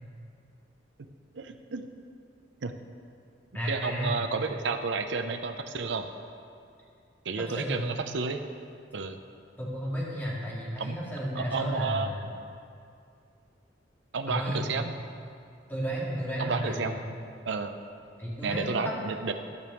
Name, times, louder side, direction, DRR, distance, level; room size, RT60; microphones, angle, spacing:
voice 1, 1.3-1.9 2.6-2.7 3.7-6.1 7.2-8.4 8.9-9.2 10.8-11.0 11.3-12.1 14.1-14.9 16.4-17.0 17.5-17.7 18.4-19.3, right 4 dB, 70° right, 7 dB, 0.6 m, -31 dB
voice 2, 3.5-4.2 7.5-7.9 9.6-12.2 14.3-14.8 15.7-17.0 18.2-18.9, equal, 10° left, -6 dB, 2.2 m, -33 dB
12.5 x 5.2 x 7.0 m, 2.5 s
head